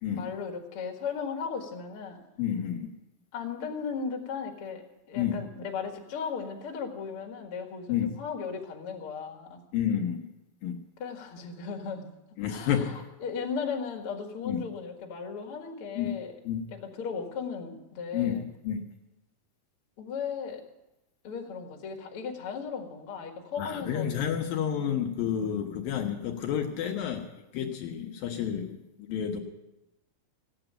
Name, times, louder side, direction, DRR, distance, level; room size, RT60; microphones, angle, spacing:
voice 1, 0.1-2.2 3.3-9.6 11.0-12.1 12.5-16.3 16.7-18.4 20.0-20.6 21.2-24.1, left 6 dB, 45° left, 2 dB, 2.1 m, -36 dB
voice 2, 2.4-2.9 5.2-5.4 7.9-8.1 9.7-10.2 10.6-10.8 12.4-13.0 14.4-14.6 16.0-16.2 16.4-16.6 18.1-18.8 23.6-29.4, left 9 dB, 70° left, 2 dB, 2.6 m, -30 dB
16.0 x 8.9 x 8.9 m, 0.96 s
omnidirectional pair, 4.5 m